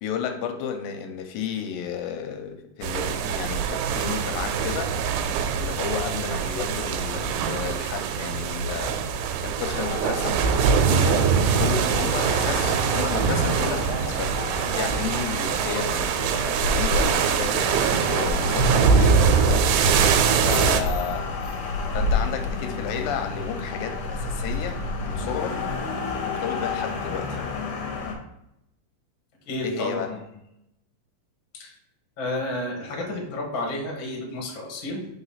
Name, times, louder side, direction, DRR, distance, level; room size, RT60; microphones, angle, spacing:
voice 1, 0.0-4.9 5.5-9.0 9.4-11.3 11.5-21.3 21.9-25.6 26.2-27.4 29.6-30.1, left 8 dB, 90° left, 5 dB, 2.4 m, -33 dB
sound 1, 2.8-20.8, right 7 dB, 90° right, 2.4 m, -23 dB
sound 2, 9.7-28.1, left 3 dB, 65° left, 1.7 m, -30 dB
voice 2, 29.4-30.3 31.5-31.7 32.2-35.1, left 1 dB, 50° left, 0 dB, 1.5 m, -31 dB
4.4 x 4.0 x 5.5 m, 0.83 s
omnidirectional pair, 4.1 m